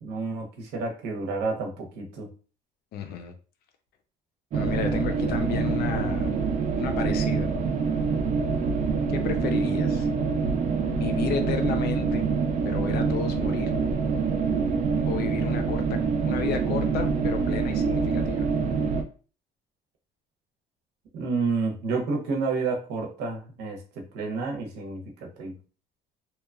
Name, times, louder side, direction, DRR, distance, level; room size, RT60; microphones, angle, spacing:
voice 1, 0.0-2.3 21.1-23.8 24.1-25.0 25.4-25.5, right 4 dB, 85° right, 1 dB, 0.8 m, -29 dB
voice 2, 2.9-3.3 4.5-6.3 6.8-7.5 9.1-10.1 10.9-12.2 12.6-13.7 15.1-16.0 16.3-18.4, left 7 dB, 70° left, 7 dB, 0.5 m, -32 dB
sound 1, 4.5-19.0, right 5 dB, 50° right, 0.5 m, -25 dB
2.8 x 2.2 x 2.4 m, 0.37 s
cardioid pair, 110°, 17 cm